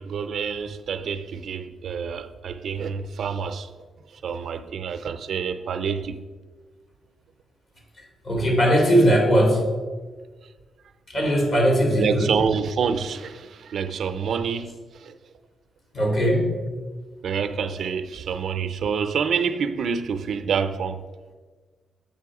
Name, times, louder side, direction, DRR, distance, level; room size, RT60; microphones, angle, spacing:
voice 1, 0.0-3.7 4.2-6.2 8.4-8.5 12.0-14.7 15.0-15.2 17.2-21.0, right 6 dB, 70° right, 0.5 m, -27 dB
voice 2, 8.2-9.7 11.1-12.3 15.9-16.6, equal, 50° left, 2.7 m, -19 dB
7.5 x 5.5 x 4.8 m
cardioid pair, 80°, 0 cm